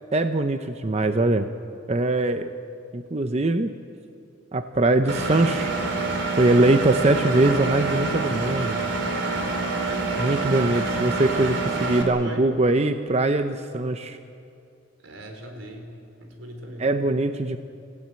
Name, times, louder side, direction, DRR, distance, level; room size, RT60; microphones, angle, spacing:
voice 1, 0.1-1.5 1.9-2.5 2.9-3.7 4.5-5.7 6.4-8.8 10.2-11.5 11.8-14.2 16.8-17.6, right 2 dB, 35° right, 8 dB, 0.7 m, -22 dB
Engine, 5.1-12.0, right 3 dB, 70° right, 3.2 m, -27 dB
voice 2, 15.0-15.9 16.2-17.0, right 1 dB, 85° right, 4 dB, 3.9 m, -40 dB
25.5 x 16.0 x 8.9 m, 2.5 s
head